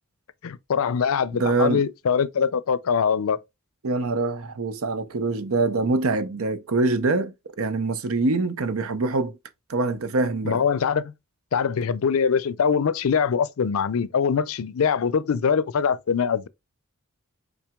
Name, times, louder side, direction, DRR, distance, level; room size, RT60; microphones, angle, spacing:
voice 1, 0.4-3.4 10.4-11.1 11.5-16.5, left 6 dB, 70° left, 0.4 m, -23 dB
voice 2, 1.3-1.8 3.8-9.4 9.7-10.6, right 3 dB, 75° right, 0.6 m, -24 dB
5.8 x 3.9 x 2.3 m
head